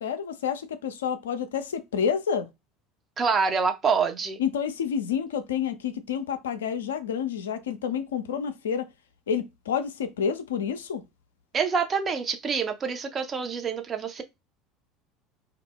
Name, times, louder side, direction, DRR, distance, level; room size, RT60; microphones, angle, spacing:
voice 1, 0.0-2.5 4.4-8.9 9.3-11.0, left 7 dB, 75° left, 0.3 m, -29 dB
voice 2, 3.2-4.4 11.5-14.2, right 5 dB, 35° right, 0.6 m, -26 dB
2.3 x 2.0 x 3.5 m
figure-of-eight pair, 70°, 0 cm